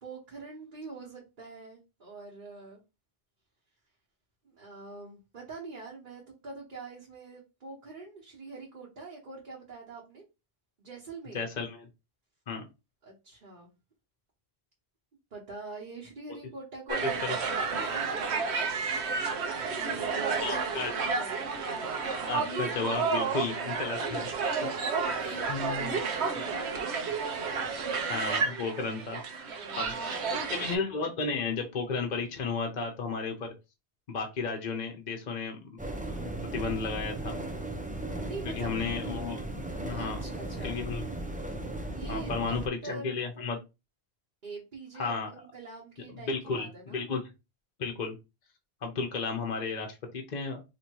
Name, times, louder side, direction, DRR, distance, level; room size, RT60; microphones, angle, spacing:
voice 1, 0.0-2.8 4.4-10.2 10.8-11.4 13.0-13.7 15.3-18.4 19.1-21.5 22.2-22.3 24.4-24.7 25.1-27.1 27.7-27.8 29.5-30.6 38.3-38.7 39.9-40.8 41.9-42.6 42.8-43.2 44.4-47.1, right 3 dB, 50° right, -3 dB, 1.2 m, -45 dB
voice 2, 11.3-11.9 12.5-12.6 17.0-17.4 20.4-20.9 22.3-24.3 25.0-25.2 25.5-26.0 28.1-29.2 29.8-33.5 34.1-35.8 36.2-37.4 38.5-39.4 39.8-40.2 40.6-41.0 42.1-43.6 44.9-45.3 46.1-47.2 47.8-48.1 48.8-50.6, left 4 dB, 50° left, 3 dB, 0.7 m, -33 dB
sound 1, 16.9-30.8, right 5 dB, 85° right, 1.1 m, -31 dB
sound 2, 35.8-42.7, right 1 dB, 10° right, 0.4 m, -36 dB
3.0 x 2.7 x 4.5 m, 0.26 s
omnidirectional pair, 1.1 m